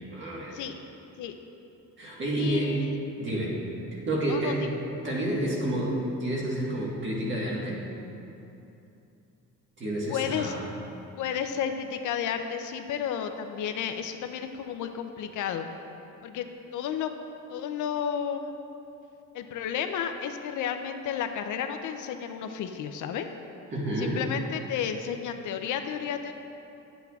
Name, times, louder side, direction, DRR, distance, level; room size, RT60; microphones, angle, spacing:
voice 1, 0.1-0.6 2.0-2.7 3.2-3.6 3.9-4.6 5.0-7.8 9.8-10.6 23.7-24.2, right 1 dB, 35° right, -5 dB, 1.5 m, -29 dB
voice 2, 2.3-2.9 3.3-3.4 4.3-4.5 10.1-10.5 11.2-15.7 16.2-16.5 16.7-17.1 17.5-18.6 19.3-23.3 24.0-26.3, left 8 dB, 70° left, 7 dB, 0.5 m, -32 dB
11.0 x 7.9 x 2.4 m, 2.8 s
cardioid pair, 165°, 31 cm